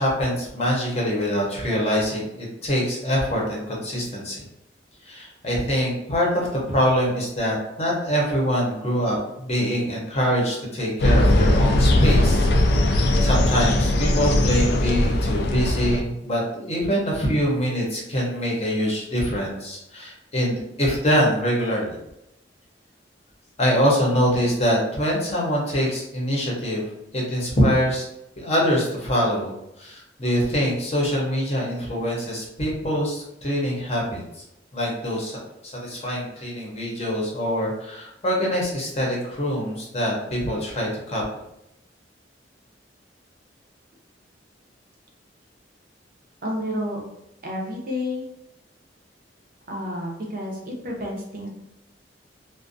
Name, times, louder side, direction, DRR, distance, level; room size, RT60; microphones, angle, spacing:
voice 1, 0.0-4.4 5.1-22.0 23.6-26.8 27.1-28.0 28.4-34.2 34.7-41.2, equal, 35° left, -3 dB, 0.7 m, -24 dB
sound 1, 11.0-16.0, left 1 dB, 60° left, 0.3 m, -19 dB
voice 2, 46.4-47.0 47.4-48.3 49.7-51.5, left 1 dB, 50° right, -1 dB, 0.5 m, -30 dB
2.5 x 2.2 x 2.5 m, 0.83 s
head